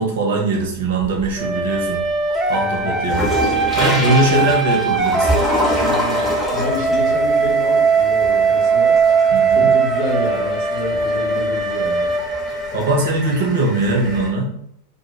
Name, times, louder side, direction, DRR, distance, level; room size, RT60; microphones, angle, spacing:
voice 1, 0.0-2.0 2.5-3.3 3.7-5.3 9.3-9.7 12.7-14.5, right 2 dB, 60° right, 0 dB, 0.6 m, -20 dB
sound 1, 0.6-1.5 2.0-14.3, left 1 dB, 10° left, 0.7 m, -27 dB
sound 2, 1.4-13.2, right 5 dB, 15° right, 0.3 m, -19 dB
voice 2, 2.5-3.0 4.0-4.5 5.7-9.0 9.5-12.1, left 3 dB, 45° left, -1 dB, 0.6 m, -28 dB
2.1 x 2.1 x 3.0 m, 0.75 s
figure-of-eight pair, 90°, 0 cm